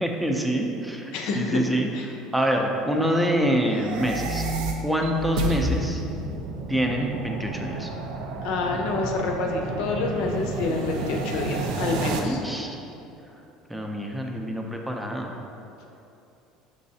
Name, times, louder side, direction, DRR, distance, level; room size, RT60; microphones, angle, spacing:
voice 1, 0.0-1.9 2.3-4.4 4.8-6.0 6.7-7.9 12.0-12.8 13.7-15.3, equal, 5° right, 1 dB, 0.5 m, -26 dB
voice 2, 1.1-1.6 1.9-2.1 8.4-12.4, left 3 dB, 70° left, 2 dB, 0.5 m, -28 dB
sound 1, 3.7-12.2, right 3 dB, 75° right, 0.4 m, -30 dB
5.4 x 3.1 x 2.7 m, 2.8 s
supercardioid pair, 105°, 0 cm